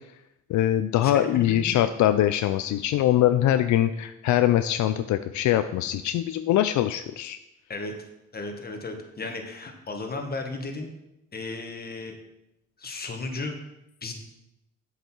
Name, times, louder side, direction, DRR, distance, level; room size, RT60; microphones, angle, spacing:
voice 1, 0.5-7.4, left 12 dB, 75° left, 10 dB, 0.5 m, -23 dB
voice 2, 1.0-1.8 7.7-7.9 8.3-10.9 11.3-12.2 12.8-13.6 14.0-14.1, left 3 dB, 30° left, 4 dB, 1.7 m, -34 dB
8.1 x 7.9 x 4.5 m, 0.88 s
cardioid pair, 90°, 30 cm